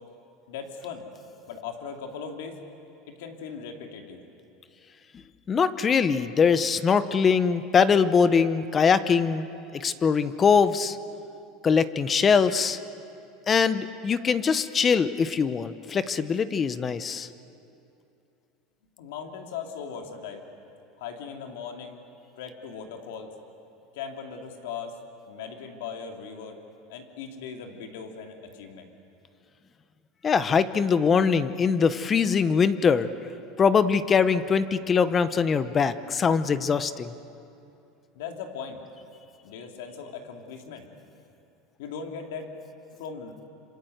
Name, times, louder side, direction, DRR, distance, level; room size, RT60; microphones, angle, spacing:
voice 1, 0.5-1.1 1.5-2.6 3.1-4.2 19.0-20.4 21.0-22.0 22.4-23.3 23.9-25.0 25.3-26.6 26.9-28.9 38.1-38.8 39.4-40.9 41.8-42.5 43.0-43.4, left 6 dB, 85° left, 3 dB, 3.1 m, -38 dB
voice 2, 5.5-9.5 9.7-11.0 11.6-12.8 13.5-17.3 30.2-33.1 33.6-37.1, left 6 dB, 25° left, 13 dB, 0.8 m, -22 dB
26.5 x 26.0 x 8.0 m, 2.7 s
supercardioid pair, 140°, 0 cm